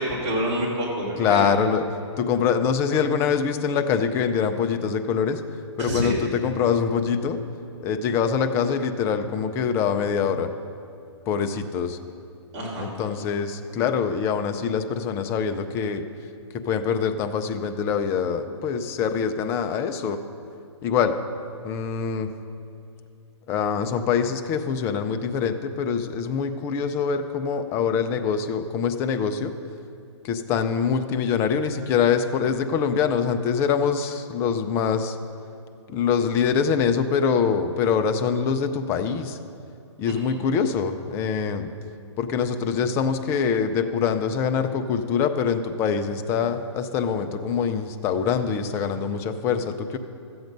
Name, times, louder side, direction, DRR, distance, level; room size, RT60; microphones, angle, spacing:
voice 1, 0.0-1.5 5.8-6.3 12.5-12.9 40.1-40.4, right 1 dB, 30° right, -5 dB, 2.8 m, -28 dB
voice 2, 1.2-1.9 2.2-5.4 5.8-7.4 7.8-10.5 11.3-12.0 12.8-16.0 16.7-20.2 20.8-21.2 21.6-22.3 23.5-29.5 30.2-35.2 35.9-39.4 40.0-41.7 42.2-50.0, left 6 dB, 15° left, 8 dB, 0.4 m, -24 dB
13.0 x 7.8 x 5.2 m, 2.6 s
hypercardioid pair, 150°, 15 cm